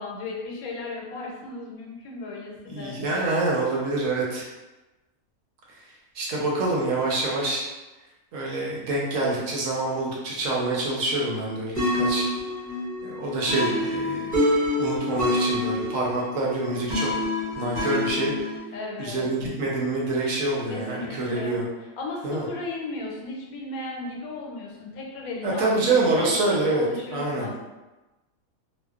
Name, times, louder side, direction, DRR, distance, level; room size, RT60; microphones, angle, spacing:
voice 1, 0.0-3.0 18.7-19.3 20.7-21.6 22.0-27.6, left 3 dB, 90° left, -1 dB, 1.1 m, -35 dB
voice 2, 2.7-4.4 6.1-7.6 8.3-12.3 13.0-14.5 14.8-17.1 17.6-18.3 19.0-21.7 22.2-22.5 25.4-26.8 27.1-27.5, right 2 dB, 70° right, -3 dB, 1.0 m, -26 dB
sound 1, 11.8-18.6, left 1 dB, 40° right, 0.7 m, -27 dB
2.6 x 2.1 x 2.3 m, 1.1 s
omnidirectional pair, 1.5 m